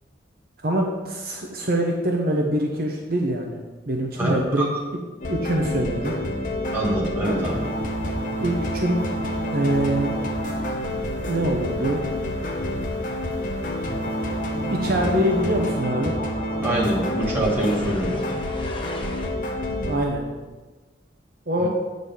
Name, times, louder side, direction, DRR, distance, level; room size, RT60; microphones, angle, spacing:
voice 1, 0.6-3.6 3.9-4.7 5.3-6.1 8.4-9.0 9.5-10.1 11.2-12.0 14.7-16.2 19.9-20.2 21.5-21.7, right 1 dB, 50° right, 0 dB, 0.8 m, -24 dB
voice 2, 4.2-4.6 6.7-7.7 16.6-18.4, right 1 dB, 10° right, -5 dB, 1.7 m, -24 dB
sound 1, 5.2-20.0, equal, 45° left, 1.0 m, -28 dB
sound 2, 7.3-15.8, left 3 dB, 70° left, 0.6 m, -40 dB
sound 3, 13.1-19.3, left 3 dB, 25° left, 0.8 m, -40 dB
8.1 x 3.9 x 6.9 m, 1.3 s
head